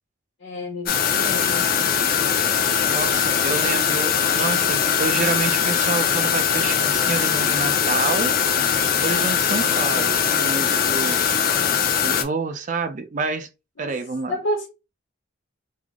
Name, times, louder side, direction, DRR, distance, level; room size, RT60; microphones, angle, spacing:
voice 1, 0.4-1.7 13.8-14.0 14.3-14.7, left 1 dB, 60° left, 1.0 m, -29 dB
sound 1, 0.9-12.2, left 8 dB, 45° left, 0.5 m, -21 dB
voice 2, 2.8-8.4 9.0-11.3 12.0-13.5 13.8-14.4, right 4 dB, 35° right, 0.4 m, -28 dB
3.3 x 2.0 x 3.6 m
head